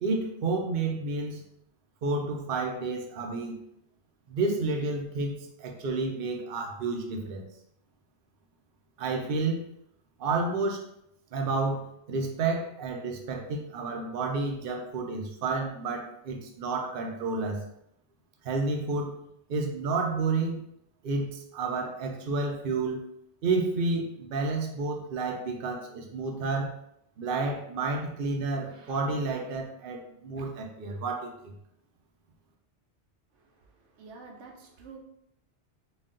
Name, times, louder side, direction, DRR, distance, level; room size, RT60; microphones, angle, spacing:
voice 1, 0.0-1.4 2.0-3.6 4.3-7.5 9.0-9.6 10.2-10.8 11.3-17.6 18.4-20.6 21.0-23.0 23.4-26.8 27.2-31.3, right 3 dB, 55° right, 2 dB, 0.8 m, -30 dB
voice 2, 33.3-35.0, right 4 dB, 85° right, 0 dB, 1.0 m, -49 dB
4.0 x 2.3 x 3.7 m, 0.76 s
omnidirectional pair, 1.2 m